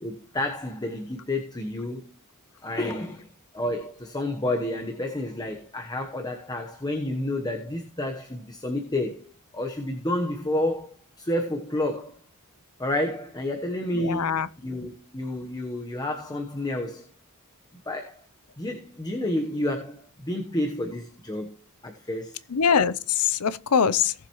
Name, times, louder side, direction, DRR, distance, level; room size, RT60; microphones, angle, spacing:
voice 1, 0.0-2.0 2.6-12.2 12.8-17.1 17.9-18.2 18.6-21.5 21.8-22.4, left 1 dB, 20° left, 1.1 m, -30 dB
voice 2, 13.9-14.5 22.5-24.1, left 7 dB, 90° left, 0.6 m, -23 dB
18.0 x 7.3 x 3.1 m
head